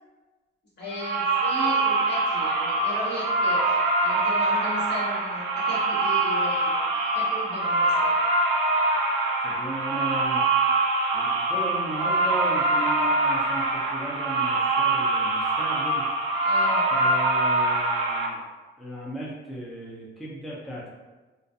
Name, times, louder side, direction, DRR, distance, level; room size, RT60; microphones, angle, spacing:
voice 1, 0.8-8.1 16.4-16.9, left 1 dB, 60° left, -7 dB, 1.1 m, -37 dB
sound 1, 0.9-18.3, right 2 dB, 85° right, 0.4 m, -24 dB
voice 2, 9.4-10.4 11.1-16.0 16.9-18.4 18.8-20.9, right 1 dB, ahead, -6 dB, 0.5 m, -36 dB
2.4 x 2.2 x 2.6 m, 1.2 s
cardioid pair, 90°, 20 cm